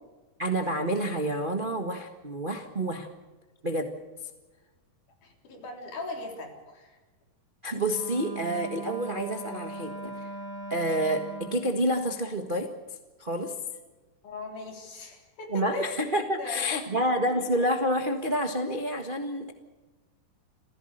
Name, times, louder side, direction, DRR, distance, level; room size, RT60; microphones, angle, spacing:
voice 1, 0.4-3.1 3.6-3.9 7.6-10.3 10.7-12.7 13.2-13.5 15.5-19.5, equal, 45° right, 4 dB, 0.6 m, -28 dB
voice 2, 5.2-7.0 14.2-16.0 16.4-17.0, left 2 dB, 65° left, 2 dB, 5.1 m, -39 dB
Wind instrument woodwind instrument, 7.9-11.8, right 3 dB, 90° right, 4.8 m, -39 dB
27.5 x 16.0 x 6.7 m, 1.2 s
omnidirectional pair, 3.8 m